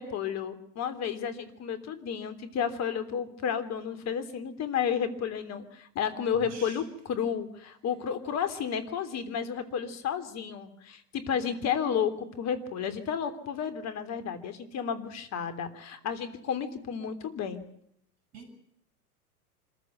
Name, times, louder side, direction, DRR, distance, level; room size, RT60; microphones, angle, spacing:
voice 1, 0.0-17.6, left 7 dB, 35° left, 3.3 m, -32 dB
voice 2, 6.3-6.8 18.3-18.5, right 5 dB, 35° right, 7.6 m, -45 dB
26.0 x 15.0 x 9.3 m
hypercardioid pair, 105°, 46 cm